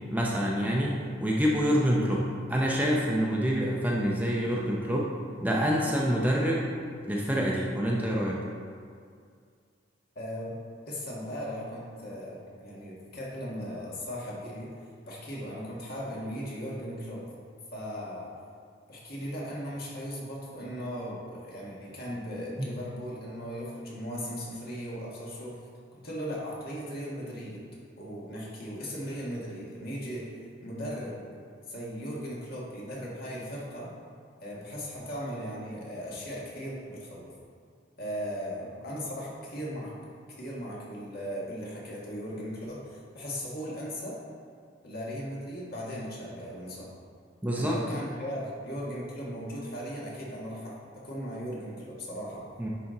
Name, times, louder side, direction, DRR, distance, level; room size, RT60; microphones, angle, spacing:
voice 1, 0.1-0.9 1.2-5.1 5.4-6.7 7.1-8.4 22.6-22.7 47.4-47.8 52.6-52.7, equal, 10° right, -3 dB, 0.6 m, -26 dB
voice 2, 10.1-10.6 10.9-14.7 15.1-17.2 17.7-18.3 18.9-25.6 26.0-27.6 28.0-30.2 30.6-31.2 31.7-33.9 34.4-37.3 38.0-39.9 40.4-44.2 44.8-46.9 47.5-50.7 51.0-52.4, equal, 50° left, -5 dB, 1.7 m, -37 dB
10.5 x 4.2 x 3.8 m, 2.2 s
head